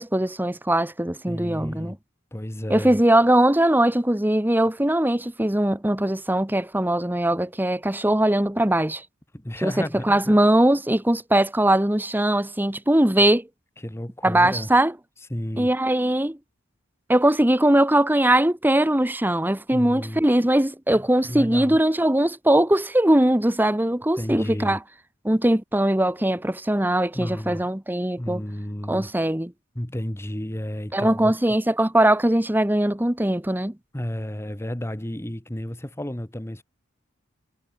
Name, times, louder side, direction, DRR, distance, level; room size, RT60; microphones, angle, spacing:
voice 1, 0.0-2.0 2.7-9.0 9.6-13.5 14.2-14.9 15.6-16.4 17.1-24.8 25.2-28.4 28.9-29.5 30.9-33.7, right 1 dB, 10° right, 1.2 m, -21 dB
voice 2, 1.3-2.0 2.3-3.0 9.3-10.3 13.8-14.7 15.3-15.7 19.7-20.2 20.9-21.8 24.2-24.8 27.1-27.6 28.2-29.1 29.7-31.4 33.9-36.6, left 1 dB, 15° left, 1.2 m, -32 dB
head